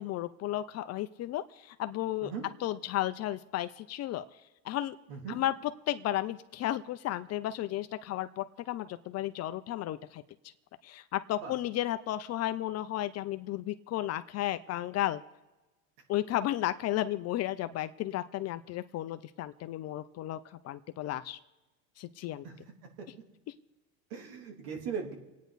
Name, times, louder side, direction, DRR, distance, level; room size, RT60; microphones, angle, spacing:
voice 1, 0.0-2.3 2.6-4.2 4.6-5.0 5.3-5.5 5.9-10.2 10.8-15.2 16.1-20.4 20.6-21.4 22.0-22.4, left 13 dB, 35° left, 12 dB, 0.6 m, -33 dB
voice 2, 24.1-25.1, right 6 dB, 60° right, 2 dB, 3.2 m, -38 dB
26.5 x 9.3 x 4.1 m, 1.1 s
supercardioid pair, 120°, 44 cm